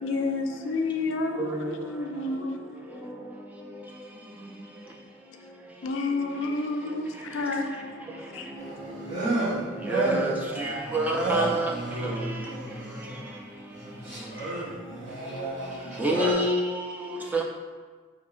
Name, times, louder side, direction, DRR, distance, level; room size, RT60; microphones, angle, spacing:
voice 1, 0.0-2.6 5.8-8.0 8.3-8.5, left 3 dB, 80° left, 5 dB, 0.4 m, -30 dB
voice 2, 2.0-2.4 2.9-4.9 7.3-7.6 8.3-8.6 11.1-11.2 11.6-14.6 17.0-17.4, equal, 25° left, -6 dB, 1.0 m, -45 dB
sound 1, 8.6-13.2 13.7-16.3, right 2 dB, 85° right, 1.4 m, -32 dB
voice 3, 9.9-10.3 10.9-11.7 16.0-16.8 17.3-17.4, right 1 dB, 10° right, -1 dB, 0.3 m, -25 dB
4.4 x 2.8 x 2.4 m, 1.4 s
head